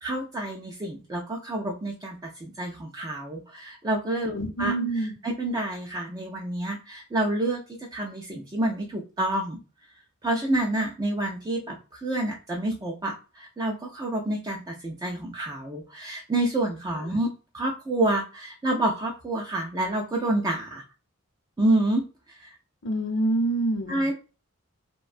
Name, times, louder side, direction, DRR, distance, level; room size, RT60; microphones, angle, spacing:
voice 1, 0.0-9.6 10.2-20.8 21.6-22.6 23.9-24.1, right 1 dB, 20° right, 0.3 m, -28 dB
voice 2, 4.3-5.1 22.8-24.1, right 2 dB, 60° left, 0.7 m, -26 dB
2.4 x 2.1 x 2.4 m
head